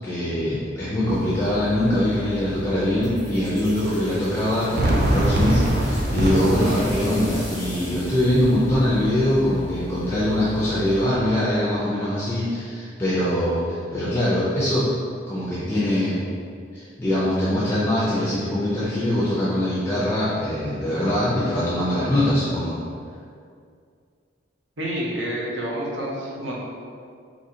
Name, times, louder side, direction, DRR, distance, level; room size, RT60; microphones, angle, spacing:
voice 1, 0.0-14.9 15.3-16.2 16.7-22.8, left 1 dB, 10° left, -10 dB, 0.4 m, -23 dB
sound 1, 1.1-11.1, left 3 dB, 70° left, 0.4 m, -40 dB
sound 2, 3.0-9.6, equal, 20° right, 0.9 m, -40 dB
Fireworks, 4.8-9.8, right 1 dB, 50° right, 0.4 m, -25 dB
voice 2, 24.8-26.5, equal, 75° right, -4 dB, 0.8 m, -28 dB
3.7 x 2.7 x 2.7 m, 2.3 s
head